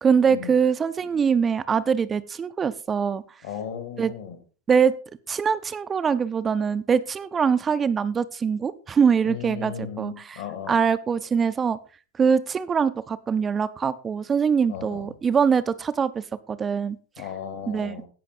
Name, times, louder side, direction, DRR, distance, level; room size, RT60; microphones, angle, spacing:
voice 1, 0.0-3.2 4.0-4.1 4.7-5.0 5.3-10.4 10.7-11.8 12.2-17.0 17.7-17.9, right 6 dB, 20° right, 0.6 m, -23 dB
voice 2, 3.4-4.4 9.3-10.8 14.7-15.1 17.2-18.1, left 8 dB, 60° left, 2.5 m, -36 dB
16.0 x 5.9 x 4.1 m
figure-of-eight pair, 90°, 0 cm